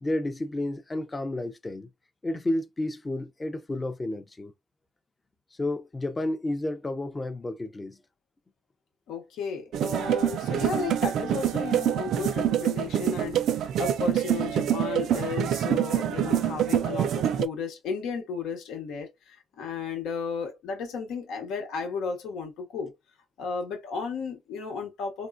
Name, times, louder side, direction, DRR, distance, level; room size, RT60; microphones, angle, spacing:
voice 1, 0.0-1.9 2.2-4.5 5.6-8.0, left 1 dB, 25° left, 0.5 m, -31 dB
voice 2, 9.1-22.9 23.4-25.3, left 5 dB, 85° left, 1.1 m, -34 dB
sound 1, 9.7-17.5, right 10 dB, 75° right, 0.3 m, -26 dB
3.6 x 2.1 x 2.5 m
cardioid pair, 90°, 0 cm